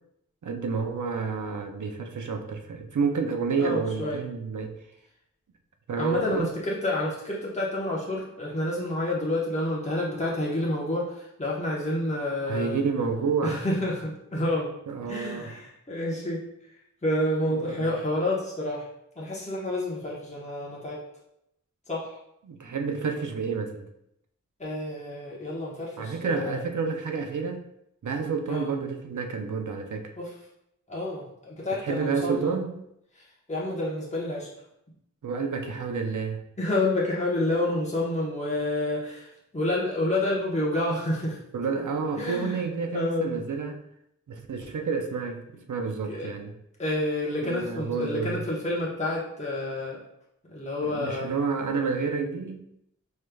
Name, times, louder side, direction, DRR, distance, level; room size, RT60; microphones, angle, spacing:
voice 1, 0.4-4.7 5.9-6.5 12.5-13.6 14.9-15.6 17.5-17.9 22.5-23.9 26.0-27.6 28.0-30.1 31.8-32.8 35.2-36.4 41.5-43.8 44.3-46.5 47.4-48.4 50.8-52.6, right 5 dB, 80° right, 5 dB, 0.5 m, -29 dB
voice 2, 3.6-4.2 6.0-12.8 13.4-14.7 15.1-16.4 17.0-18.9 19.2-21.0 21.9-22.2 24.6-26.6 28.5-28.7 30.2-30.3 30.9-32.5 33.2-34.5 36.6-41.4 42.2-42.7 42.9-43.4 46.1-46.3 46.8-50.0 50.5-51.3, left 1 dB, 25° left, -6 dB, 1.0 m, -29 dB
4.8 x 3.2 x 2.3 m, 0.78 s
wide cardioid pair, 55°, 30 cm